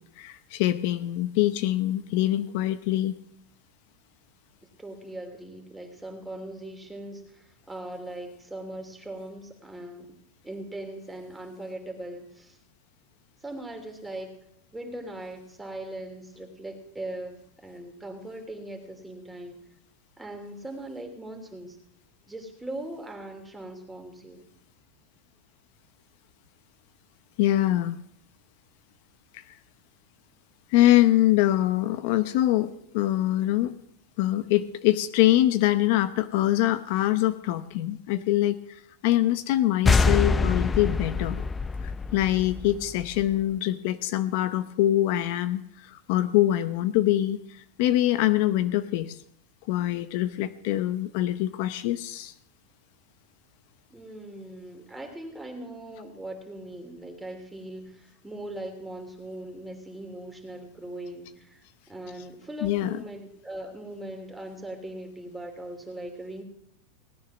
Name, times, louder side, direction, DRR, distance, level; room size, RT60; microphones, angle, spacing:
voice 1, 0.2-3.1 27.4-28.0 29.3-29.4 30.7-33.7 34.2-41.4 41.8-49.2 49.7-52.3 62.6-63.0, left 14 dB, 60° left, 12 dB, 0.7 m, -24 dB
voice 2, 4.8-10.1 10.4-12.6 13.4-14.3 14.7-19.6 20.2-21.8 22.3-24.4 53.9-66.4, right 1 dB, 5° right, 3 dB, 2.9 m, -40 dB
sound 1, 39.8-43.3, left 4 dB, 15° left, 0.6 m, -25 dB
18.5 x 9.6 x 6.1 m, 0.72 s
supercardioid pair, 130°, 0 cm